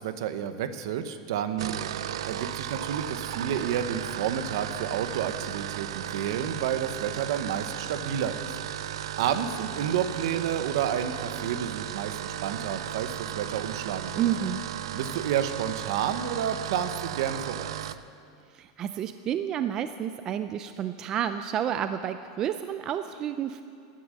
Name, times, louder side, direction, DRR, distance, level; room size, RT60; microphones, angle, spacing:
voice 1, 0.0-1.8 2.3-8.5 9.2-14.3 14.9-17.8, right 9 dB, 60° right, 10 dB, 0.9 m, -30 dB
sound 1, 1.6-18.0, right 11 dB, 90° right, 0.5 m, -35 dB
voice 2, 14.2-14.6 18.5-23.6, right 10 dB, 20° right, 10 dB, 0.3 m, -30 dB
15.0 x 10.5 x 6.3 m, 2.4 s
supercardioid pair, 170°, 3 cm